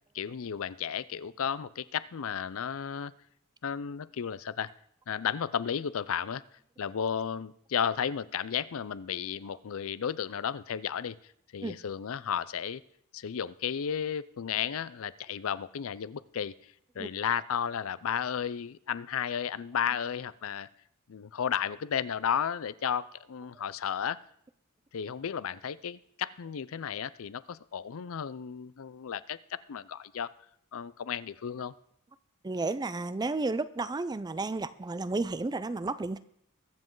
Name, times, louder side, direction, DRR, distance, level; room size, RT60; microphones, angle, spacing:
voice 1, 0.1-3.1 3.6-4.7 5.1-6.4 6.8-11.2 11.5-12.8 13.1-16.5 17.0-20.7 21.1-24.2 24.9-30.3 30.7-31.7, left 8 dB, 70° left, 17 dB, 0.5 m, -33 dB
voice 2, 32.4-36.2, right 3 dB, 20° right, 15 dB, 0.4 m, -32 dB
22.0 x 7.4 x 3.8 m, 0.70 s
head